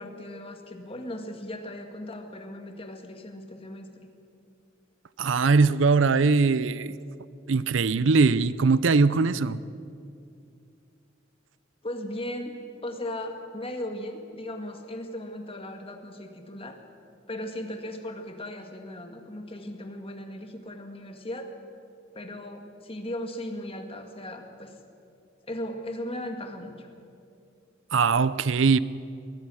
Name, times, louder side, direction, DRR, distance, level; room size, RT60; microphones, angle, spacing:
voice 1, 0.0-3.9 11.8-16.8 17.3-21.5 22.1-24.7 25.5-26.9, left 1 dB, 30° left, 2.0 m, -37 dB
voice 2, 5.2-7.0 7.5-9.6 27.9-28.8, right 4 dB, 70° right, 0.6 m, -21 dB
21.5 x 20.0 x 6.4 m
head